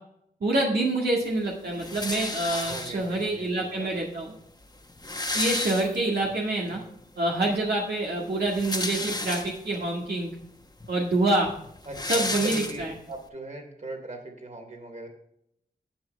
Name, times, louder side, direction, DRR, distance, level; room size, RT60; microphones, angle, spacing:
voice 1, 0.4-4.3 5.3-6.8 7.2-10.3 10.9-11.5 12.1-12.9, right 2 dB, 75° right, -3 dB, 1.9 m, -26 dB
sound 1, 1.8-3.2 4.1-4.2 4.4-4.5 4.8-6.3 6.8-6.9 8.3-9.8 10.4-10.5 10.8-13.2, left 2 dB, 25° left, 1.2 m, -32 dB
voice 2, 2.7-4.0 6.6-6.9 11.9-15.1, right 2 dB, 45° right, 3 dB, 3.0 m, -40 dB
11.5 x 8.6 x 3.4 m, 0.73 s
wide cardioid pair, 75°, 17 cm